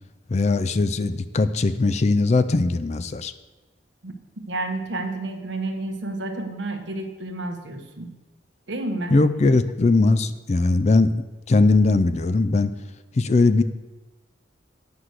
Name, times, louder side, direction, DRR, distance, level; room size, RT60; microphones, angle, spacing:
voice 1, 0.3-3.3 9.1-11.1 11.5-12.8 13.1-13.6, left 3 dB, 35° left, 12 dB, 0.4 m, -20 dB
voice 2, 4.5-8.1 8.7-9.2, right 2 dB, 70° right, 5 dB, 1.1 m, -30 dB
9.4 x 5.9 x 6.5 m, 1.2 s
head